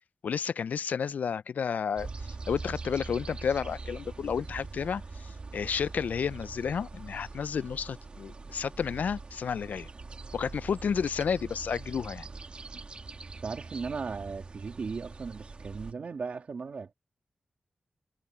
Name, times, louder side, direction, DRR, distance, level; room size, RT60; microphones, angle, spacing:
voice 1, 0.2-2.1 2.5-9.9 10.3-12.3, left 7 dB, 80° left, 0.4 m, -31 dB
sound 1, 2.0-15.9, right 3 dB, 40° right, 1.7 m, -43 dB
voice 2, 13.4-16.9, right 5 dB, 55° right, 2.5 m, -37 dB
wide cardioid pair, 135°, 3 cm